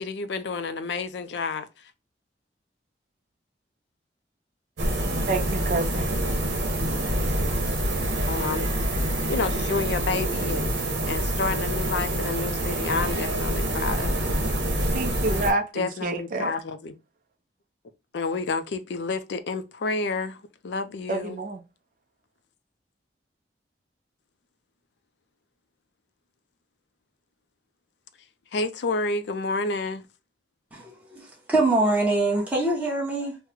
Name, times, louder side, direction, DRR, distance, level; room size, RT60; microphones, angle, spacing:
voice 1, 0.0-1.7 8.2-8.7 9.3-14.3 15.7-17.0 18.1-21.4 28.5-30.0, left 3 dB, 70° left, 0.4 m, -30 dB
sound 1, 4.8-15.5, right 1 dB, 80° right, 0.9 m, -26 dB
voice 2, 5.3-6.1 14.9-16.5 21.1-21.6, right 2 dB, 45° right, 0.5 m, -28 dB
voice 3, 30.7-33.4, right 2 dB, 10° right, 0.9 m, -24 dB
3.1 x 2.1 x 3.5 m
head